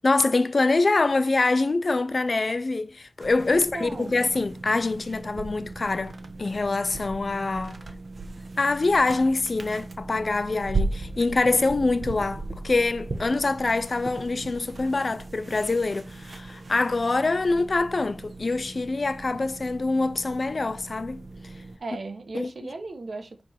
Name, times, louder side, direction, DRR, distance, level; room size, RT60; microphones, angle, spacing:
voice 1, 0.0-7.8 8.6-21.2 22.3-22.5, left 3 dB, 60° left, 0.7 m, -25 dB
sound 1, 3.2-21.8, right 3 dB, 65° right, 1.2 m, -37 dB
voice 2, 3.5-4.2 21.8-23.4, right 3 dB, 80° right, 1.4 m, -36 dB
7.9 x 3.7 x 5.8 m
wide cardioid pair, 70°, 0 cm